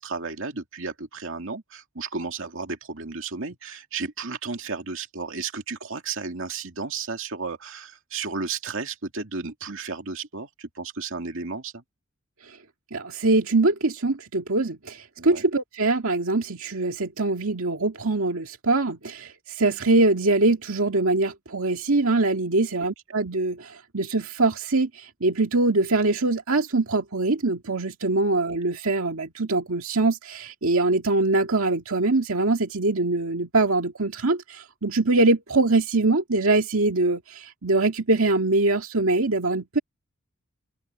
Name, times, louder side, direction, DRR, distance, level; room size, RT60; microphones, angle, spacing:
voice 1, 0.0-11.8 15.2-15.4 22.8-22.9, right 4 dB, 70° right, 2.5 m, -33 dB
voice 2, 12.9-39.8, right 2 dB, 85° right, 2.0 m, -23 dB
open air
head